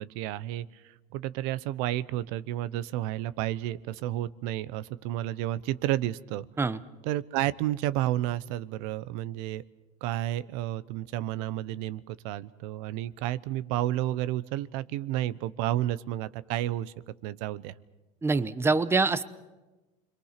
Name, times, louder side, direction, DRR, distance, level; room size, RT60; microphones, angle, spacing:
voice 1, 0.0-6.5 7.0-9.6 10.0-16.9 17.2-17.7, right 14 dB, 70° right, 17 dB, 0.9 m, -31 dB
voice 2, 18.2-19.2, right 4 dB, 15° right, 14 dB, 0.9 m, -25 dB
29.5 x 23.0 x 5.9 m, 1.1 s
supercardioid pair, 120°, 18 cm